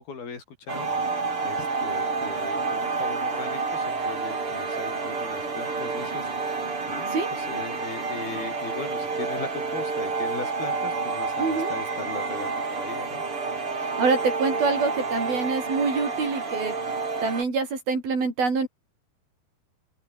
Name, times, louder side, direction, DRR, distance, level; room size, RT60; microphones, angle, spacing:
voice 1, 0.0-13.2, left 5 dB, 70° left, 7.1 m, -39 dB
sound 1, 0.7-17.4, right 4 dB, 35° right, 5.1 m, -29 dB
voice 2, 11.4-11.7 14.0-16.7 17.2-18.7, right 4 dB, 65° right, 8.6 m, -25 dB
open air
omnidirectional pair, 4.5 m